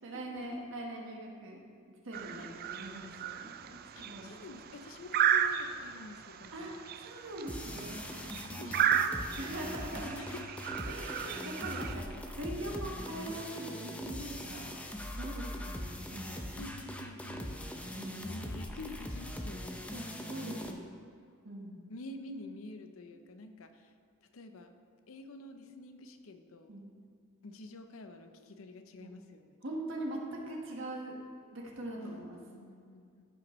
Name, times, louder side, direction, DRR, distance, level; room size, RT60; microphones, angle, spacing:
voice 1, 0.0-1.6 2.0-4.3 6.5-8.0 8.5-8.8 9.4-10.2 10.9-14.7 15.1-16.5 17.9-18.3 19.9-20.8 21.4-21.8 26.7-26.9 29.0-29.1 29.6-31.2 31.5-32.4, right 1 dB, 65° right, -1 dB, 1.4 m, -42 dB
sound 1, 2.1-11.9, right 9 dB, 45° right, 0.3 m, -34 dB
voice 2, 3.9-6.8 8.6-9.5 10.1-10.7 11.8-11.9 14.2-14.7 16.5-17.4 18.2-19.8 20.4-21.1 21.9-23.9 24.2-24.7 25.1-26.7 27.4-29.6 32.0-33.3, left 2 dB, 70° left, 8 dB, 0.6 m, -48 dB
sound 2, 7.5-20.7, left 1 dB, 5° left, 0.5 m, -41 dB
14.5 x 5.7 x 3.1 m, 2.2 s
head